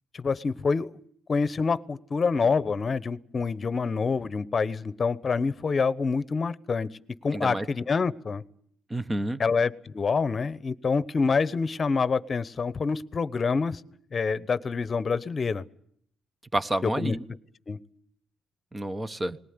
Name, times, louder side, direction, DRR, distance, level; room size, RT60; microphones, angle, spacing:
voice 1, 0.1-0.9 1.3-6.9 7.2-8.4 9.4-13.8 14.1-15.6 16.8-17.2 17.7-17.8, left 5 dB, 40° left, 16 dB, 1.0 m, -26 dB
voice 2, 7.3-7.7 8.9-9.4 16.5-17.2 18.7-19.4, right 1 dB, 20° right, 12 dB, 1.1 m, -29 dB
20.0 x 18.5 x 9.7 m, 0.65 s
cardioid pair, 90°, 0 cm